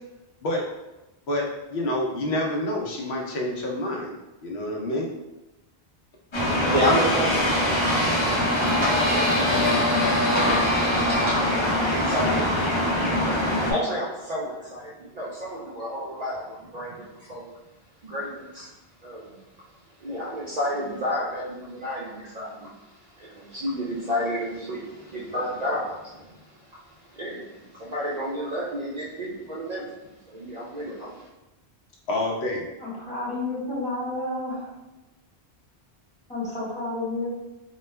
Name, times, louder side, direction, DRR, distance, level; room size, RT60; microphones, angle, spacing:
voice 1, 1.3-4.1 4.4-5.1 32.1-32.7, left 1 dB, 80° left, -1 dB, 0.8 m, -28 dB
sound 1, 6.3-13.7, left 1 dB, 35° left, 0.6 m, -22 dB
voice 2, 6.4-10.0 10.3-10.6 10.9-17.5 18.0-18.7 19.0-19.3 20.0-31.3, equal, 50° right, -6 dB, 0.5 m, -31 dB
voice 3, 32.8-34.7 36.3-37.3, left 2 dB, 5° left, -9 dB, 1.1 m, -30 dB
2.2 x 2.2 x 3.2 m, 1.0 s
omnidirectional pair, 1.1 m